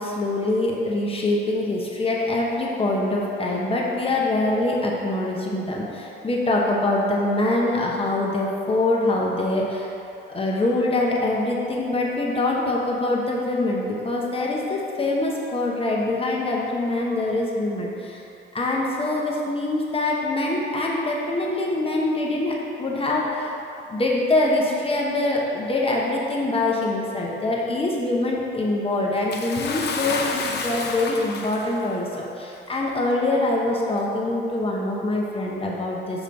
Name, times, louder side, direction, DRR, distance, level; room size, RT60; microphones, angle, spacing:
voice 1, 0.0-9.9 10.3-18.2 18.5-23.5 23.9-36.2, left 2 dB, 30° left, -3 dB, 0.8 m, -24 dB
Bathtub (filling or washing) / Splash splatter, 29.3-31.9 32.8-32.9 33.9-34.0, left 4 dB, 55° left, 0.7 m, -29 dB
6.6 x 3.1 x 5.1 m, 2.8 s
cardioid pair, 90°, 20 cm